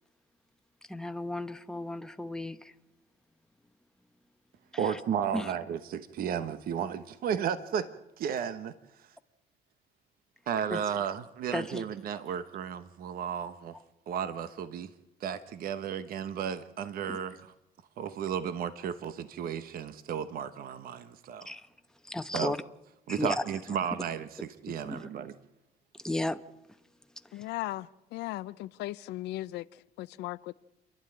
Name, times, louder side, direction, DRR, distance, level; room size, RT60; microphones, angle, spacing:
voice 1, 0.9-2.7 4.7-5.0 5.3-5.5 10.7-10.8 11.5-11.8 17.1-17.2 21.4-21.7 22.0-22.6 23.1-23.8 24.8-25.1 25.9-26.8 27.2-27.5, left 1 dB, 5° left, 1.0 m, -35 dB
voice 2, 4.8-7.9 8.2-8.7 10.5-13.8 14.1-14.9 15.2-17.4 18.0-21.5 22.3-22.5 23.1-24.3 24.6-25.3, right 8 dB, 60° right, 1.1 m, -33 dB
voice 3, 27.3-30.5, left 17 dB, 85° left, 0.7 m, -37 dB
29.0 x 11.5 x 8.9 m
cardioid pair, 110°, 17 cm